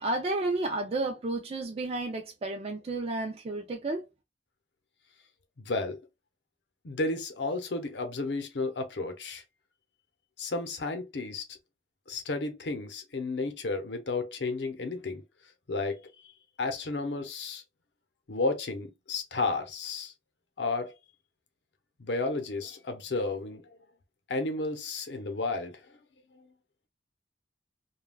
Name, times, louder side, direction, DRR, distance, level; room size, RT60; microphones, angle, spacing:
voice 1, 0.0-4.1, right 2 dB, 35° right, 0.4 m, -31 dB
voice 2, 5.6-6.0 6.8-9.4 10.4-11.4 12.1-15.2 15.7-16.1 16.6-17.6 18.3-20.1 20.6-20.9 22.0-23.6 24.3-25.8, left 3 dB, 75° left, 0.7 m, -32 dB
3.4 x 2.2 x 2.2 m
head